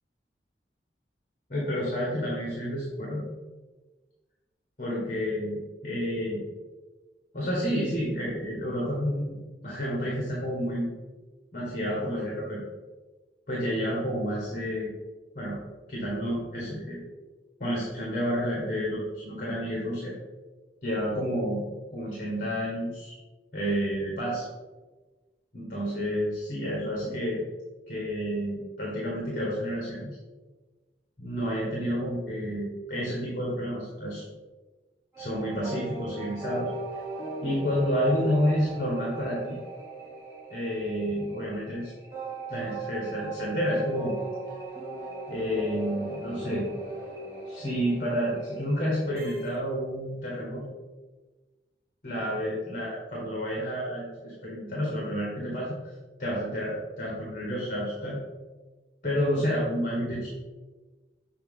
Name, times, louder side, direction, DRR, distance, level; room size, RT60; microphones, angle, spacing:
voice 1, 1.5-3.3 4.8-6.4 7.3-9.4 9.6-10.9 11.5-12.6 13.5-14.9 15.4-15.6 15.9-17.0 17.6-20.1 20.8-21.6 21.9-23.1 23.5-24.4 25.5-27.4 27.9-30.1 31.2-34.2 35.2-36.7 37.4-39.6 40.5-41.9 42.5-44.2 45.3-46.7 47.5-50.7 52.0-55.9 56.2-58.2 59.0-60.3, equal, 45° left, -5 dB, 1.7 m, -30 dB
sound 1, 35.1-49.6, right 2 dB, 15° right, 1.7 m, -39 dB
7.5 x 4.3 x 3.8 m, 1.2 s
head